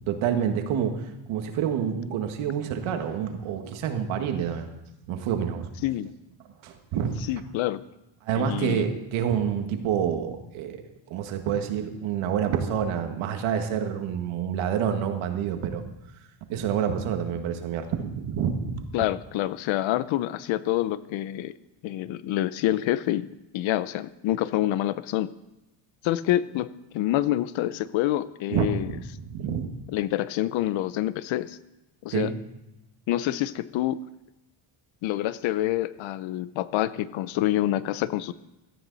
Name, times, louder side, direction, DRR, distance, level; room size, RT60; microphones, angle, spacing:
voice 1, 0.1-4.7 5.1-5.7 6.6-7.2 8.2-10.8 11.1-15.8 16.5-19.1 28.5-29.7 32.1-32.3, right 8 dB, 85° right, 5 dB, 1.9 m, -28 dB
voice 2, 7.3-7.8 8.4-8.9 18.9-21.5 21.8-23.3 23.5-25.3 26.0-28.9 29.9-31.6 32.0-32.3 33.1-34.0 35.0-38.3, left 14 dB, 75° left, 16 dB, 0.8 m, -27 dB
17.0 x 13.5 x 4.1 m, 0.94 s
cardioid pair, 145°, 47 cm